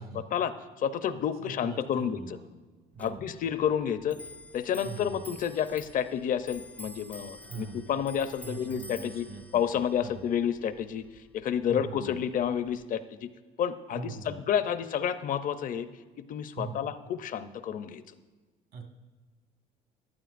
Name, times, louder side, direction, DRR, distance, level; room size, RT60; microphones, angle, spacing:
voice 1, 0.3-2.4 3.0-4.2 4.5-9.3 9.5-11.1 11.3-13.3 13.6-15.9 16.2-18.0, left 8 dB, 55° left, 12 dB, 0.6 m, -30 dB
voice 2, 1.4-2.5 2.9-3.3 4.8-5.2 7.5-7.9 8.4-10.1 11.7-12.2 13.9-14.4 16.6-16.8 18.7-18.8, right 4 dB, 65° right, 3 dB, 1.6 m, -42 dB
Clock, 3.0-12.8, left 1 dB, 10° left, 0.5 m, -50 dB
14.5 x 11.0 x 2.5 m, 1.3 s
cardioid pair, 110°, 17 cm